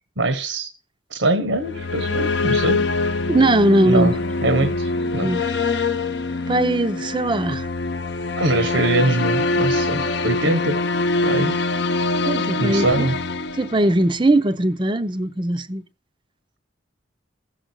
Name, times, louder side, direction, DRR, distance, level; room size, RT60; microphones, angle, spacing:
voice 1, 0.2-0.7 1.1-2.8 3.8-4.1 4.4-5.3 8.4-10.8 11.2-11.6 12.6-13.2, right 2 dB, 80° right, 1.4 m, -22 dB
sound 1, 1.5-14.3, left 3 dB, 60° left, 0.8 m, -24 dB
voice 2, 3.3-4.2 4.6-4.7 5.2-5.4 6.5-7.7 12.2-13.1 13.5-15.8, right 1 dB, 25° right, 0.6 m, -20 dB
15.0 x 6.4 x 6.3 m
head